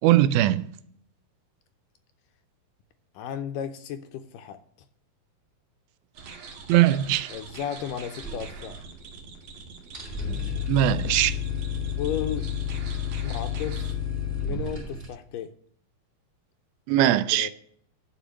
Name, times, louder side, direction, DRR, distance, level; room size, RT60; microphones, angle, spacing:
voice 1, 0.0-0.7 6.7-7.3 10.7-11.4 16.9-17.5, right 13 dB, 85° right, 2.5 m, -20 dB
voice 2, 3.1-4.6 7.3-8.8 12.0-12.5 13.2-14.0 14.4-15.5 17.0-17.5, left 9 dB, 80° left, 2.0 m, -34 dB
sound 1, 6.1-13.9, right 5 dB, 60° right, 2.2 m, -44 dB
sound 2, 8.2-9.2 9.5-9.6 9.8-15.1, left 7 dB, 20° right, 2.1 m, -31 dB
11.5 x 5.0 x 7.2 m
omnidirectional pair, 4.2 m